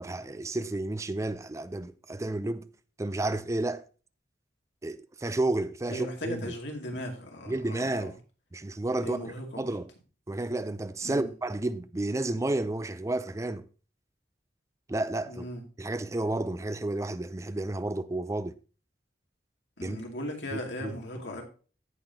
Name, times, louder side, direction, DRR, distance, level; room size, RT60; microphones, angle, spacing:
voice 1, 0.0-2.7 3.0-3.8 4.8-6.5 7.5-8.2 8.5-9.9 10.3-13.7 14.9-15.4 15.8-18.5 19.8-20.0 20.5-20.9, right 2 dB, 15° right, 0.4 m, -31 dB
voice 2, 5.9-8.1 9.0-9.7 11.0-11.3 15.3-15.6 19.8-21.4, left 1 dB, 90° left, 2.5 m, -38 dB
15.5 x 5.7 x 2.8 m
head